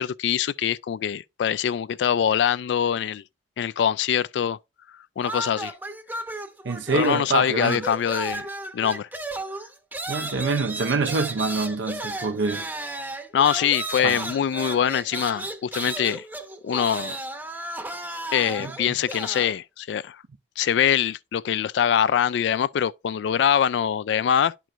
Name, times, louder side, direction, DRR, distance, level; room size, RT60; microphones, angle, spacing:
voice 1, 0.0-3.2 3.6-4.6 5.2-5.7 6.9-8.5 8.7-9.1 13.3-16.2 16.6-17.2 18.3-20.2 20.6-24.7, left 9 dB, 75° left, 0.3 m, -23 dB
sound 1, 5.2-7.3 7.6-19.5, right 2 dB, 10° right, 0.7 m, -34 dB
voice 2, 6.6-7.8 10.1-12.6 14.0-14.2 18.6-18.7, right 3 dB, 90° right, 0.6 m, -26 dB
11.5 x 4.5 x 2.5 m
head